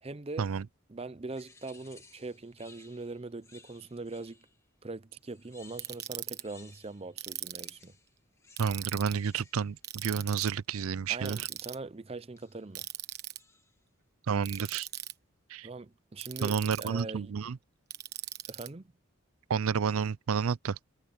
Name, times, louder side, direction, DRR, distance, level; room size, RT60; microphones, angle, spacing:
voice 1, 0.0-0.5 0.9-4.5 4.8-7.9 11.1-12.9 15.6-17.3 18.5-18.9, right 3 dB, 25° right, 0.5 m, -42 dB
sound 1, 1.3-4.7 5.2-7.2 7.5-11.3 12.4-12.7 13.4-13.8 14.3-15.1, left 3 dB, 15° left, 1.7 m, -60 dB
Ratchet pawl, 5.8-6.4 7.2-7.8 8.6-9.2 9.8-10.5 11.3-11.8 12.8-13.4 14.4-15.1 16.2-17.0 17.9-18.7, right 13 dB, 45° right, 1.3 m, -39 dB
voice 2, 8.6-11.5 14.3-14.9 15.5-15.7 16.4-17.6 19.5-20.8, right 6 dB, 80° right, 0.5 m, -30 dB
head